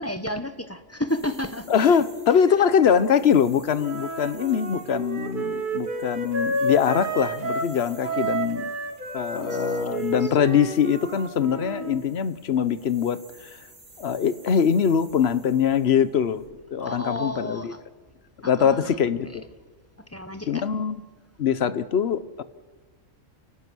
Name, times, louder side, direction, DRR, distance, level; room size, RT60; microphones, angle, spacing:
voice 1, 0.0-2.0 8.1-8.4 9.4-10.3 16.8-17.8 18.4-19.0 20.1-20.6, left 1 dB, 10° left, 9 dB, 0.9 m, -32 dB
sound 1, 1.1-16.5, right 2 dB, 75° right, 4.5 m, -53 dB
voice 2, 1.7-8.7 9.1-13.6 14.0-16.4 16.7-17.7 18.4-19.4 20.5-21.0 21.4-22.4, left 7 dB, 55° left, 14 dB, 1.0 m, -23 dB
Wind instrument woodwind instrument, 3.8-7.7 8.0-12.0, right 2 dB, 40° right, 2.2 m, -30 dB
29.5 x 16.5 x 6.2 m, 1.3 s
omnidirectional pair, 1.4 m